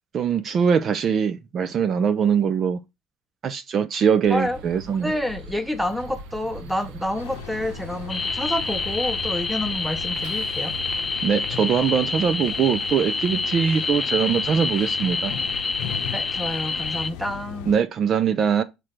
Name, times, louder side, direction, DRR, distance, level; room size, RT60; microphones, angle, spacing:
voice 1, 0.1-2.8 3.4-5.1 11.2-15.3 17.7-18.6, right 7 dB, 40° right, 0.5 m, -22 dB
sound 1, 4.2-11.3, right 3 dB, 80° right, 0.9 m, -41 dB
voice 2, 5.0-10.7 16.1-17.7, left 1 dB, ahead, 0.9 m, -28 dB
sound 2, 7.2-17.8, left 10 dB, 80° left, 0.7 m, -38 dB
sound 3, 8.1-17.1, left 4 dB, 25° left, 0.6 m, -27 dB
6.2 x 3.3 x 5.8 m
cardioid pair, 120°, 0 cm